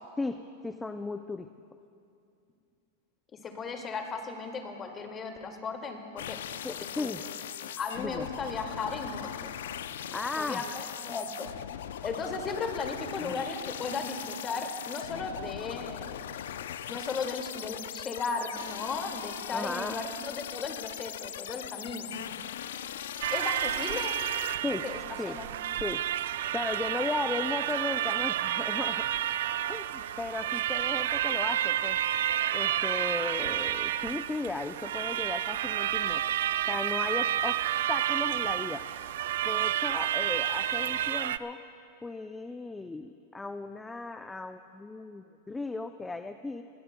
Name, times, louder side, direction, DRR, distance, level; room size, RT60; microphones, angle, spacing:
voice 1, 0.2-1.5 6.6-7.2 8.0-8.3 10.1-10.6 13.2-13.4 19.5-20.0 24.6-24.9 25.2-25.4 25.8-26.0 26.5-29.1 29.7-32.0 32.5-36.2 36.7-37.6 37.9-38.8 39.4-41.6 42.0-46.6, left 3 dB, 10° left, 8 dB, 0.5 m, -36 dB
voice 2, 3.3-6.4 7.0-7.1 7.8-9.5 10.4-11.5 12.0-16.2 16.9-22.1 23.3-24.2 24.8-25.0 25.3-25.5, left 4 dB, 25° left, 3 dB, 2.2 m, -36 dB
sound 1, 6.2-24.6, left 10 dB, 75° left, 0.5 m, -40 dB
sound 2, 23.2-41.4, right 11 dB, 70° right, 0.4 m, -30 dB
27.5 x 19.0 x 2.3 m, 2.6 s
hypercardioid pair, 105°, 0 cm